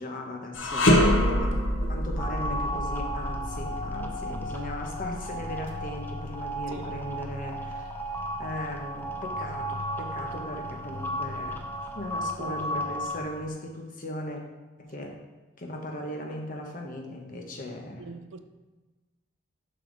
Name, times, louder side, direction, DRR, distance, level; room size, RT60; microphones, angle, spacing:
voice 1, 0.0-1.5 1.9-11.6 11.9-14.4 14.8-15.2 15.6-18.1, left 1 dB, 45° left, 1.1 m, -38 dB
sound 1, 0.5-9.8 10.2-10.4 11.2-12.1, left 1 dB, 85° left, 0.9 m, -28 dB
sound 2, 2.2-13.2, equal, 10° left, 0.6 m, -34 dB
voice 2, 18.0-18.4, right 4 dB, 85° right, 0.5 m, -42 dB
7.0 x 5.7 x 4.0 m
head